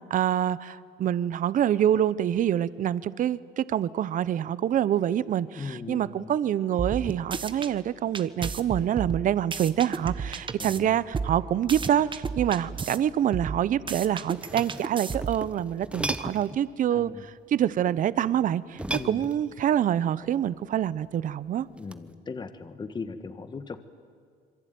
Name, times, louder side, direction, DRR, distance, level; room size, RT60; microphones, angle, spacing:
voice 1, 0.1-21.7, right 10 dB, 50° right, 18 dB, 0.8 m, -26 dB
voice 2, 5.5-6.3 10.6-11.0 16.9-17.2 18.9-19.2 21.8-23.8, left 4 dB, 25° left, 10 dB, 1.5 m, -38 dB
sound 1, 6.8-7.7 8.1-10.8 11.1-13.0 13.3-15.5, right 5 dB, 30° right, 1.3 m, -33 dB
sound 2, 14.3-16.6 18.7-19.7 21.8-22.1, right 1 dB, 5° right, 1.1 m, -36 dB
27.0 x 23.0 x 9.4 m, 2.1 s
cardioid pair, 110°, 17 cm